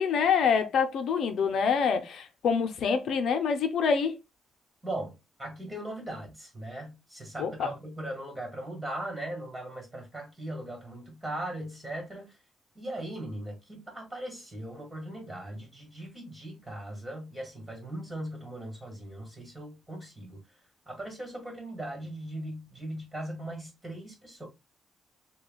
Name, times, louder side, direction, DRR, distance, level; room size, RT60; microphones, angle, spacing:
voice 1, 0.0-4.2 7.4-7.7, left 6 dB, 70° left, 0.7 m, -26 dB
voice 2, 4.8-12.3 12.8-20.4 20.9-24.5, right 1 dB, 10° right, 2.0 m, -39 dB
6.2 x 2.3 x 2.3 m
cardioid pair, 125°, 0 cm